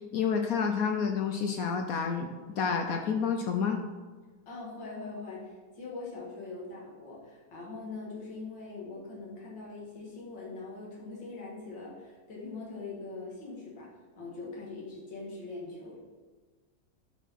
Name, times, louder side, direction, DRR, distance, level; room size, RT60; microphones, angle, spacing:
voice 1, 0.1-2.3 2.6-3.8, left 6 dB, 65° left, 4 dB, 0.9 m, -29 dB
voice 2, 4.5-13.9 14.2-16.0, left 3 dB, 90° left, -4 dB, 2.5 m, -42 dB
11.0 x 4.6 x 4.1 m, 1.3 s
omnidirectional pair, 2.0 m